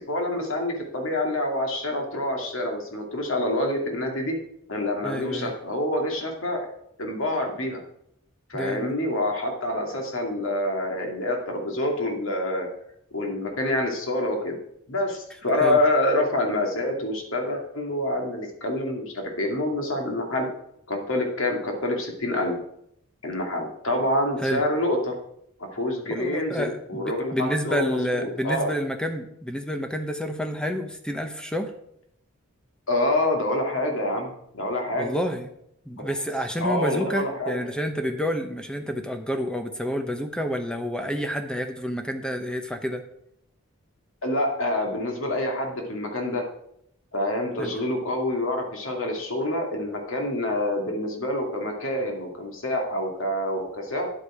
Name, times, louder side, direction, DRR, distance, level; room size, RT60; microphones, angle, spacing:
voice 1, 0.0-4.4 4.7-6.6 7.0-7.8 8.5-12.7 13.1-14.5 14.9-20.5 20.9-22.5 23.2-25.1 25.6-28.7 32.9-35.1 36.0-36.2 36.6-37.5 44.2-46.4 47.1-54.1, left 1 dB, 70° left, 2 dB, 2.2 m, -27 dB
voice 2, 5.0-5.5 8.5-8.9 15.6-15.8 24.4-24.6 26.1-31.7 35.0-35.5 35.9-43.0 47.6-47.8, equal, 5° left, 6 dB, 0.8 m, -29 dB
10.0 x 8.1 x 4.9 m, 0.74 s
head